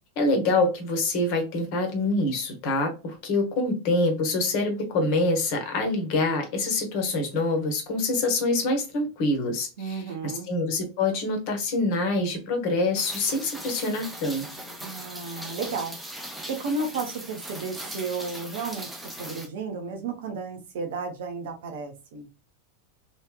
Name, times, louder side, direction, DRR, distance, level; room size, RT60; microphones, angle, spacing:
voice 1, 0.2-14.5, left 2 dB, 45° left, 1.1 m, -26 dB
voice 2, 9.8-10.5 14.8-16.0 16.5-22.3, right 4 dB, 55° right, 0.9 m, -33 dB
Rain, 13.0-19.5, right 1 dB, 5° right, 0.7 m, -39 dB
3.2 x 3.0 x 2.2 m
figure-of-eight pair, 90°, 0 cm